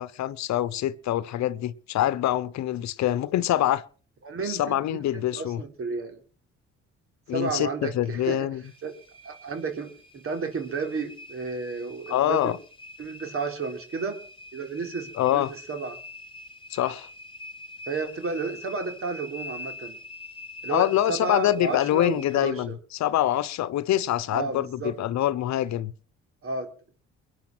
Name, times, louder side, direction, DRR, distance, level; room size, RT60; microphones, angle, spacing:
voice 1, 0.0-3.8 4.4-5.6 7.3-8.6 12.1-12.6 15.2-15.5 16.7-17.1 20.7-25.9, left 13 dB, 70° left, 1.0 m, -25 dB
voice 2, 4.2-5.0 5.3-6.2 7.3-8.5 8.8-8.9 9.2-12.5 13.0-14.2 14.5-16.0 17.9-20.0 20.6-22.7 24.3-24.9 26.4-26.7, right 4 dB, 50° right, 3.8 m, -32 dB
sound 1, 8.6-22.4, left 2 dB, 20° left, 3.1 m, -45 dB
21.5 x 9.5 x 6.1 m
cardioid pair, 85°, 29 cm